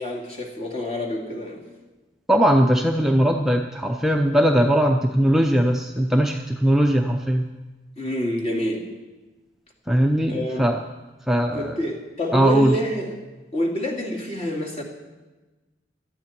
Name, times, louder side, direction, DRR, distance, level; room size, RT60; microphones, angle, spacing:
voice 1, 0.0-1.6 8.0-8.9 10.3-10.7 11.5-13.1 13.5-14.8, equal, 35° left, -1 dB, 2.6 m, -27 dB
voice 2, 2.3-7.5 9.9-10.8 11.3-11.8 12.3-12.8, equal, ahead, 2 dB, 0.5 m, -19 dB
18.0 x 13.0 x 4.4 m, 1.2 s
head